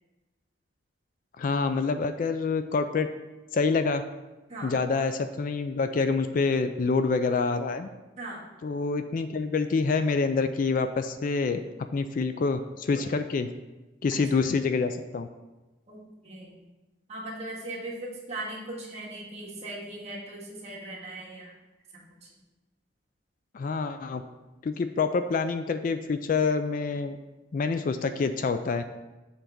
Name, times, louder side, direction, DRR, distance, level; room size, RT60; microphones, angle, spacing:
voice 1, 1.4-3.1 3.5-4.0 4.6-7.9 8.6-13.5 14.0-15.3 23.5-24.2 24.6-27.2 27.5-28.8, left 4 dB, 45° left, 9 dB, 0.3 m, -27 dB
voice 2, 15.9-16.6 17.1-21.5 21.9-22.3, right 2 dB, 35° right, -6 dB, 1.9 m, -39 dB
7.0 x 3.8 x 5.9 m, 1.1 s
head